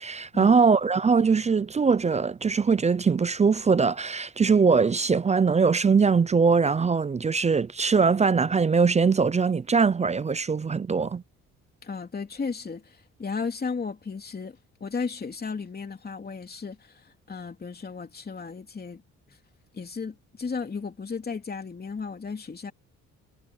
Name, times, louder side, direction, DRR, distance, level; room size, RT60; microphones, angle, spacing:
voice 1, 0.0-11.2, right 5 dB, 25° right, 0.5 m, -22 dB
voice 2, 11.8-19.0 19.7-22.7, left 5 dB, 30° left, 3.0 m, -34 dB
cardioid pair, 90°, 30 cm